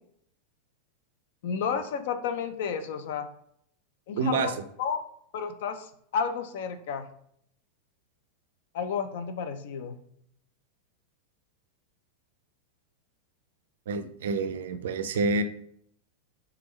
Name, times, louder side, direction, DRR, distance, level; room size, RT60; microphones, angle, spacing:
voice 1, 1.4-3.3 4.1-4.5 4.8-5.0 5.3-7.1 8.7-10.0, left 6 dB, 55° left, 9 dB, 0.4 m, -31 dB
voice 2, 4.2-4.5 13.9-15.4, right 4 dB, 60° right, 10 dB, 0.4 m, -28 dB
3.4 x 3.4 x 3.1 m, 0.68 s
figure-of-eight pair, 90°, 0 cm